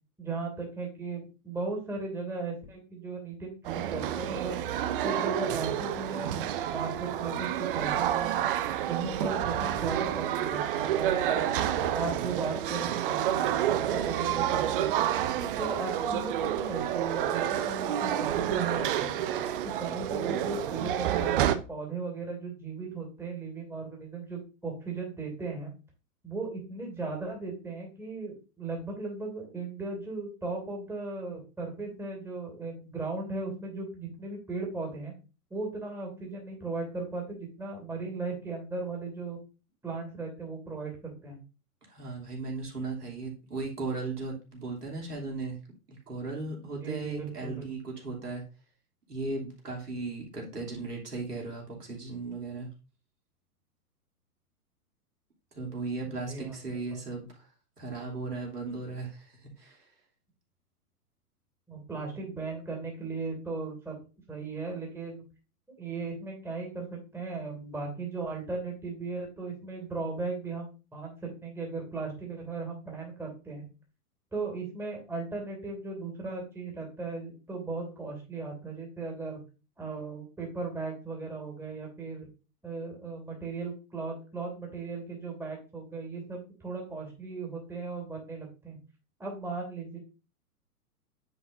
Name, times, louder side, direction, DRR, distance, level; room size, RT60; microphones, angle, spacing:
voice 1, 0.2-4.6 5.0-8.4 8.9-11.6 11.9-15.1 15.6-19.2 19.6-25.7 26.2-35.1 35.5-39.4 39.8-41.4 46.6-47.7 56.0-57.0 61.7-64.0 64.3-65.2 65.8-73.7 74.3-79.4 79.8-82.3 82.6-88.8 89.2-90.0, right 3 dB, 5° right, -1 dB, 2.6 m, -37 dB
sound 1, 3.6-21.6, right 11 dB, 35° right, 0.6 m, -29 dB
voice 2, 41.9-45.6 45.9-48.4 49.1-52.7 55.5-57.5 57.8-59.8, right 3 dB, 85° right, -2 dB, 3.1 m, -37 dB
9.5 x 5.6 x 2.7 m, 0.32 s
figure-of-eight pair, 115°, 46 cm